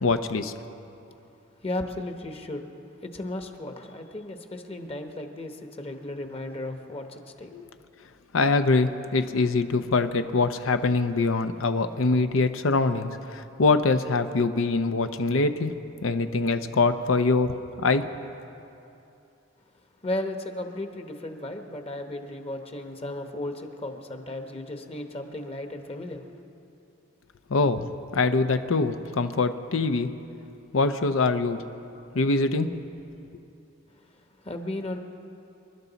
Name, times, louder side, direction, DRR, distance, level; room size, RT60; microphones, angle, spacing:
voice 1, 0.0-0.5 7.5-7.7 8.3-15.7 16.0-17.5 17.8-18.0 27.5-30.1 30.7-31.6 32.1-32.7, left 3 dB, 90° left, 9 dB, 0.7 m, -24 dB
voice 2, 1.6-2.6 3.0-7.5 20.0-26.2 34.4-35.0, left 1 dB, 30° left, 5 dB, 1.0 m, -35 dB
26.5 x 12.0 x 4.0 m, 2.8 s
head